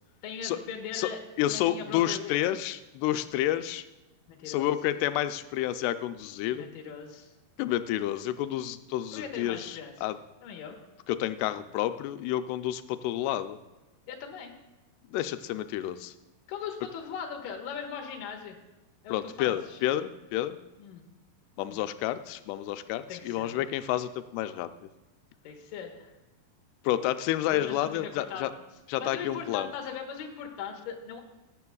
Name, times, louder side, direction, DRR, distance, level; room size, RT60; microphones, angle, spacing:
voice 1, 0.2-1.2 1.5-2.5 4.3-4.7 6.5-7.3 9.1-9.9 10.4-10.8 14.1-14.5 16.5-18.6 19.0-19.8 20.8-21.0 21.6-21.8 23.1-23.7 25.4-26.1 27.5-28.5 29.0-31.2, left 7 dB, 70° left, 2 dB, 2.5 m, -39 dB
voice 2, 1.4-3.9 4.5-6.7 7.6-10.2 11.1-13.6 15.1-16.1 19.1-20.6 21.6-24.7 26.8-28.5 28.9-29.7, left 13 dB, 90° left, 11 dB, 2.6 m, -30 dB
15.5 x 9.8 x 2.3 m, 1.1 s
omnidirectional pair, 4.6 m